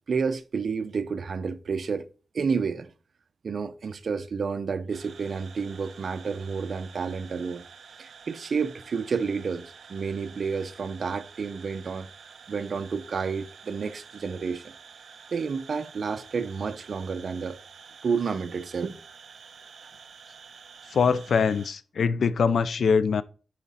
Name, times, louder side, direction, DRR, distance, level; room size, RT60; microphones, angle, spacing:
voice 1, 0.1-2.1 2.3-2.9 3.4-7.7 8.0-12.1 12.5-14.7 15.3-17.6 18.0-19.0, right 5 dB, 65° right, 0.7 m, -30 dB
sound 1, 4.9-21.7, right 6 dB, 85° right, 1.1 m, -49 dB
voice 2, 20.9-23.2, left 5 dB, 80° left, 0.6 m, -23 dB
10.5 x 5.0 x 4.2 m
wide cardioid pair, 110°, 0 cm